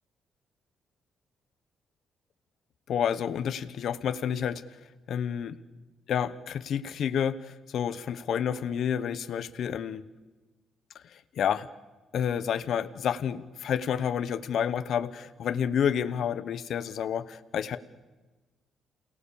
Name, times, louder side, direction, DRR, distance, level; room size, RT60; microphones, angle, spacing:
voice 1, 2.9-5.6 6.1-10.0 10.9-11.7 12.1-17.8, left 8 dB, 65° left, 12 dB, 1.0 m, -30 dB
28.5 x 19.0 x 7.0 m, 1.2 s
cardioid pair, 90°, 0 cm